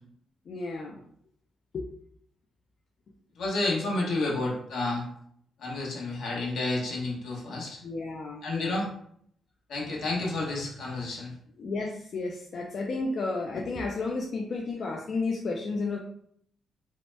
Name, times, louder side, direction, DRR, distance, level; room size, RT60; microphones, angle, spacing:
voice 1, 0.5-1.0 1.7-1.8 7.8-8.8 11.6-16.0, left 3 dB, 45° left, 0 dB, 0.3 m, -32 dB
voice 2, 3.4-5.1 5.6-7.8 8.4-8.9 9.7-11.3, left 2 dB, 70° left, -2 dB, 0.9 m, -30 dB
2.8 x 2.1 x 3.1 m, 0.67 s
cardioid pair, 135°, 0 cm